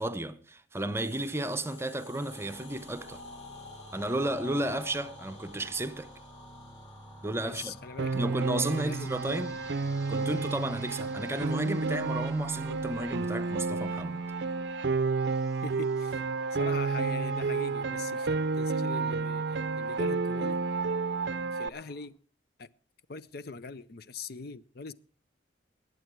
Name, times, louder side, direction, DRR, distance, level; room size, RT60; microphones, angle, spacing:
voice 1, 0.0-3.2 3.9-6.1 7.2-7.7 8.1-9.6 10.1-14.2, right 1 dB, 15° right, 0.7 m, -33 dB
sound 1, 1.0-9.3, left 3 dB, 70° left, 2.7 m, -50 dB
sound 2, 2.3-22.1, equal, 15° left, 2.1 m, -52 dB
voice 2, 7.4-8.3 8.6-9.1 15.6-16.2 16.5-20.6 21.5-22.2 22.6-22.7 23.1-24.9, left 4 dB, 55° left, 0.6 m, -42 dB
Piano, 8.0-21.7, right 4 dB, 60° right, 0.5 m, -31 dB
20.5 x 8.3 x 4.6 m
head